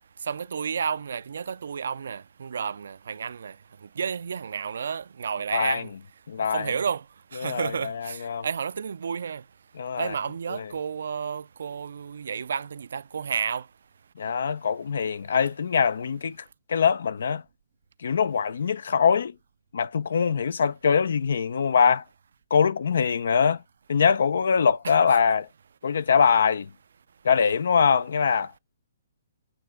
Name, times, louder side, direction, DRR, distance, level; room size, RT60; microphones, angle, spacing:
voice 1, 0.2-3.6 4.0-5.9 6.4-7.0 7.3-9.4 10.0-13.7 24.8-25.0, right 6 dB, 75° right, 0.4 m, -31 dB
voice 2, 5.5-5.9 6.3-6.7 7.4-8.5 9.8-10.1 10.5-10.7 14.2-16.4 16.7-17.4 18.0-19.3 19.7-22.0 22.5-23.6 23.9-25.5 25.8-26.7 27.2-28.6, left 6 dB, 75° left, 0.5 m, -23 dB
8.7 x 3.2 x 3.4 m
hypercardioid pair, 140°, 0 cm